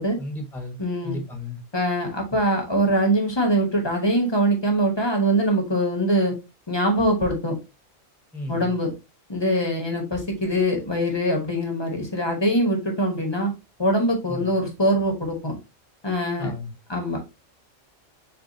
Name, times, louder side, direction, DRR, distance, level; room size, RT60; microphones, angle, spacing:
voice 1, 0.2-0.8 1.0-1.6 8.3-8.7 14.3-14.5 16.4-16.7, left 2 dB, ahead, 1.1 m, -33 dB
voice 2, 0.8-1.2 1.7-6.3 6.7-7.5 8.5-8.9 9.3-13.5 13.8-15.5 16.0-16.5 16.9-17.2, right 1 dB, 20° left, 1.1 m, -23 dB
6.9 x 2.5 x 2.7 m
omnidirectional pair, 1.3 m